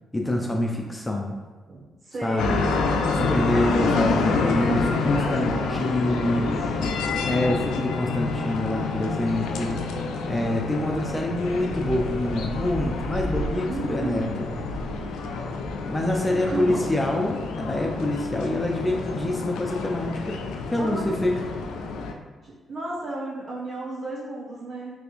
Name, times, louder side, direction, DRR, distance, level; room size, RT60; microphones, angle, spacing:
voice 1, 0.1-1.3 2.2-2.6 3.1-6.5 7.2-9.8 10.2-14.6 15.9-20.4 20.7-21.4, left 1 dB, 20° left, 1 dB, 0.4 m, -26 dB
voice 2, 2.0-2.7 3.5-6.7 13.6-14.4 16.2-17.0 20.8-21.1 22.4-24.9, right 2 dB, 50° right, -6 dB, 1.4 m, -34 dB
sound 1, 2.4-22.1, left 3 dB, 85° left, 0.3 m, -28 dB
3.3 x 3.3 x 2.5 m, 1.4 s
cardioid pair, 70°, 0 cm